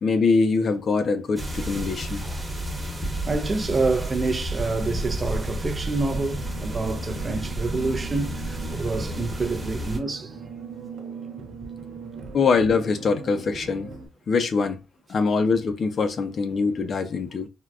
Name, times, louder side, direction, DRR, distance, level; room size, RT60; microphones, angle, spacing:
voice 1, 0.0-2.2 12.3-13.9 14.3-14.8 15.1-17.5, left 4 dB, 50° left, 0.5 m, -23 dB
sound 1, 1.4-10.0, right 1 dB, 15° right, 1.0 m, -31 dB
voice 2, 3.2-10.3, right 3 dB, 30° right, 0.4 m, -27 dB
sound 2, 6.0-14.1, right 5 dB, 75° right, 0.6 m, -39 dB
3.5 x 2.2 x 2.3 m
cardioid pair, 90°, 0 cm